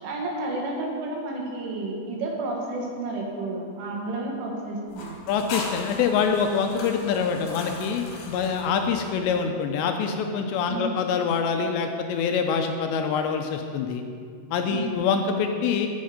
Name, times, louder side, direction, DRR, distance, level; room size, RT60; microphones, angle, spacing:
voice 1, 0.0-5.2 10.7-10.9 14.6-14.9, right 2 dB, 80° right, -1 dB, 4.2 m, -31 dB
sound 1, 4.9-9.5, left 2 dB, 60° left, 3.3 m, -39 dB
voice 2, 5.3-14.0 14.5-15.9, left 6 dB, 80° left, 5 dB, 2.6 m, -25 dB
15.0 x 8.6 x 5.1 m, 2.3 s
omnidirectional pair, 5.6 m